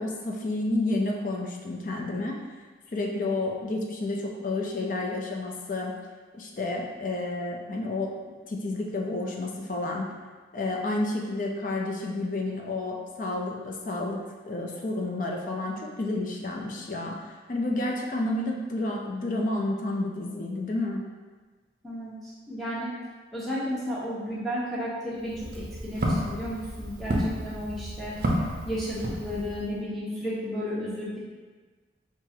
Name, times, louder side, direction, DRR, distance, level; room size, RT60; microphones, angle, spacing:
voice 1, 0.0-2.4 2.9-5.9 6.3-8.1 8.5-10.1 10.5-21.0, left 2 dB, 45° left, -1 dB, 0.4 m, -30 dB
voice 2, 22.5-22.9 23.3-28.1 28.6-31.2, equal, ahead, -9 dB, 0.9 m, -33 dB
Walk footsteps, 25.2-29.7, right 1 dB, 50° right, 0.5 m, -31 dB
5.5 x 2.4 x 2.8 m, 1.4 s
head